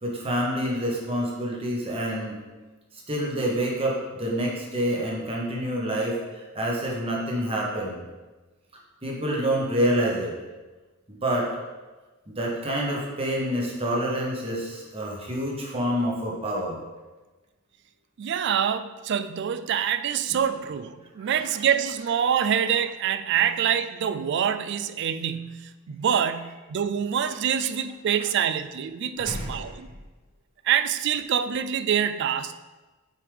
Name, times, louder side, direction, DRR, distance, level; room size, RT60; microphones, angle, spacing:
voice 1, 0.0-2.4 3.1-8.0 9.0-10.3 11.1-11.5 12.3-16.8 20.3-20.4 21.2-21.5 29.2-29.6, equal, 30° right, -2 dB, 1.2 m, -27 dB
voice 2, 18.2-29.9 30.6-32.6, right 8 dB, 55° right, 11 dB, 0.3 m, -26 dB
7.1 x 4.8 x 3.4 m, 1.2 s
head